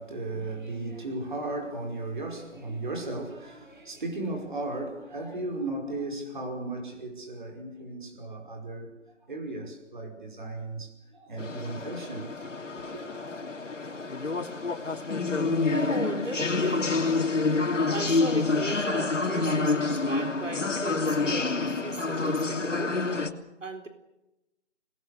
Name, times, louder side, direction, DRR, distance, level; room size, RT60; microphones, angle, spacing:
voice 1, 0.0-9.0 9.3-12.3 12.9-13.0, right 2 dB, 40° right, 5.4 m, -35 dB
sound 1, 11.4-23.3, left 3 dB, 75° left, 3.2 m, -28 dB
voice 2, 14.4-23.0 23.6-23.9, right 3 dB, 85° right, 4.0 m, -38 dB
27.5 x 20.5 x 6.6 m
figure-of-eight pair, 180°, 37 cm